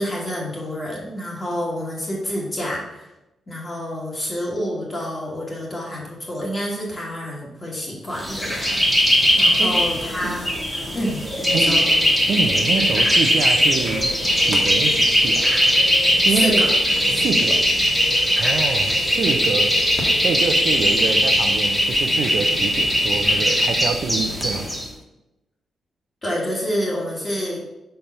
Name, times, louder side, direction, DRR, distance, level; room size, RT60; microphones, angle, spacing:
voice 1, 0.0-3.1 3.5-8.9 9.4-10.5 10.9-11.8 16.3-16.7 26.2-27.6, equal, 25° left, -4 dB, 1.5 m, -28 dB
sound 1, 8.2-24.8, equal, 5° left, 1.3 m, -19 dB
voice 2, 11.5-11.9 12.3-14.1 14.4-15.5 16.2-16.7 17.1-17.7 18.4-19.7 20.2-24.7, right 5 dB, 60° right, 7 dB, 0.6 m, -26 dB
5.2 x 4.5 x 5.5 m, 0.94 s
wide cardioid pair, 165°, 0 cm